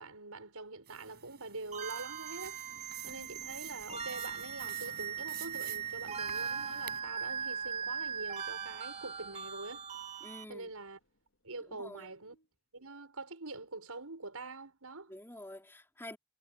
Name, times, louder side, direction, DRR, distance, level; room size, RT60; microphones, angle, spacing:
voice 1, 0.0-2.6 3.0-9.8 10.5-11.0 11.4-12.4 12.7-15.1, right 3 dB, 90° right, 6.1 m, -45 dB
sound 1, 0.9-7.0, right 11 dB, 45° right, 5.8 m, -50 dB
sound 2, 1.6-11.4 11.6-12.5, left 1 dB, 60° left, 3.5 m, -61 dB
sound 3, 1.7-10.4, right 7 dB, 30° right, 2.3 m, -39 dB
voice 2, 10.2-10.7 11.7-12.1 15.1-16.2, left 1 dB, 10° left, 3.3 m, -48 dB
head